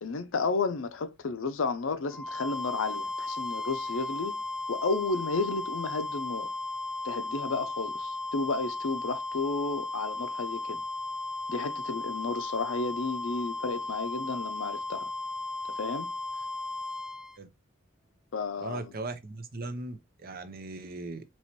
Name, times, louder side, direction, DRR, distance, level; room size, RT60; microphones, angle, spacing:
voice 1, 0.0-4.4 4.7-6.5 7.0-10.8 11.5-15.1 15.8-16.1 18.3-18.9, left 3 dB, 70° left, 0.6 m, -32 dB
sound 1, 2.1-17.4, left 2 dB, 5° right, 0.3 m, -35 dB
voice 2, 18.6-21.2, right 2 dB, 45° right, 0.7 m, -38 dB
4.4 x 3.0 x 3.0 m
head